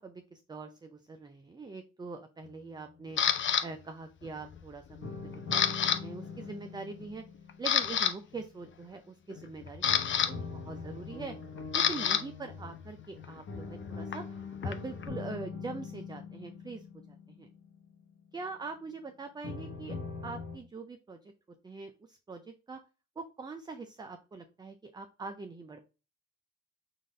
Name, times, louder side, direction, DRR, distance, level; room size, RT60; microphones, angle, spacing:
voice 1, 0.0-3.2 3.6-7.2 7.6-11.3 11.7-14.2 14.6-17.5 18.3-20.0 20.2-21.3 21.6-22.8 23.2-25.8, right 4 dB, 15° right, 7 dB, 0.4 m, -43 dB
sound 1, 2.4-3.6 5.0-9.0 9.8-18.6 19.4-20.6, left 4 dB, 60° left, 1.0 m, -43 dB
Camera, 3.2-3.6 4.2-4.6 4.9-6.0 6.2-6.5 7.0-7.1 7.5-8.1 9.3-12.2 12.5-15.1, left 8 dB, 40° left, 0.5 m, -29 dB
3.9 x 2.5 x 3.6 m, 0.31 s
cardioid pair, 90°, 30 cm